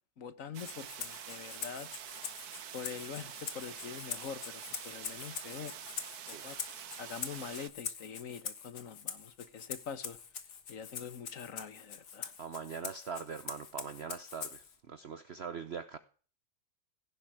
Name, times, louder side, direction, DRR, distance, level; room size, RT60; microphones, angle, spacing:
voice 1, 0.2-1.9 2.7-5.7 6.3-6.6 7.0-10.2 10.7-12.3, left 7 dB, 55° left, 1.5 m, -44 dB
sound 1, 0.5-7.7, right 10 dB, 70° right, 1.4 m, -46 dB
Rattle (instrument), 0.6-14.8, left 7 dB, 75° left, 2.0 m, -44 dB
voice 2, 12.4-16.0, right 6 dB, 50° right, 0.9 m, -42 dB
16.5 x 7.4 x 4.9 m
omnidirectional pair, 1.8 m